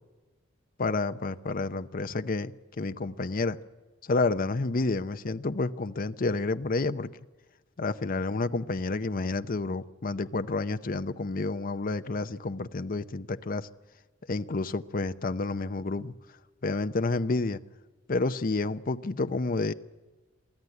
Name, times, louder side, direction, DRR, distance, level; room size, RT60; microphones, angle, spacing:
voice 1, 0.8-2.5 2.8-3.6 4.0-7.1 7.8-13.7 14.3-16.1 16.6-17.6 18.1-19.7, left 3 dB, 45° left, 10 dB, 0.7 m, -29 dB
24.0 x 13.5 x 9.7 m, 1.2 s
head